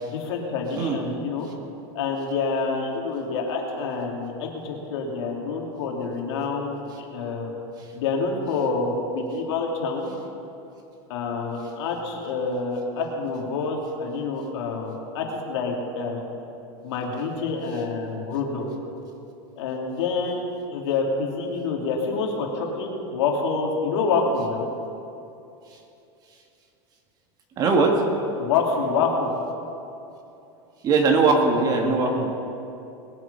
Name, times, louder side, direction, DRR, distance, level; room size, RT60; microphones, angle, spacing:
voice 1, 0.0-1.5 1.9-7.5 7.9-10.1 11.1-16.2 16.8-18.7 19.6-20.4 20.7-24.7 28.4-29.3 31.8-32.3, left 4 dB, 70° left, 0 dB, 2.8 m, -27 dB
voice 2, 27.6-27.9 30.8-32.1, right 4 dB, 25° right, 2 dB, 1.6 m, -19 dB
21.0 x 8.0 x 5.5 m, 2.8 s
supercardioid pair, 160°, 14 cm